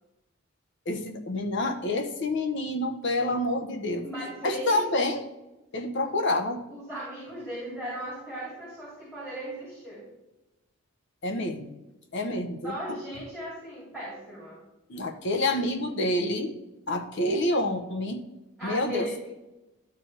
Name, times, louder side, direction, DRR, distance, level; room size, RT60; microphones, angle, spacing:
voice 1, 0.9-4.1 4.4-5.2 5.7-6.6 11.2-11.7 12.1-12.7 14.9-16.6 16.9-18.2 18.6-19.1, left 1 dB, 55° left, 5 dB, 0.9 m, -28 dB
voice 2, 4.0-4.9 6.0-6.1 6.7-10.0 12.6-14.6 18.6-19.1, right 1 dB, ahead, -9 dB, 2.7 m, -37 dB
11.5 x 4.5 x 3.3 m, 1.0 s
head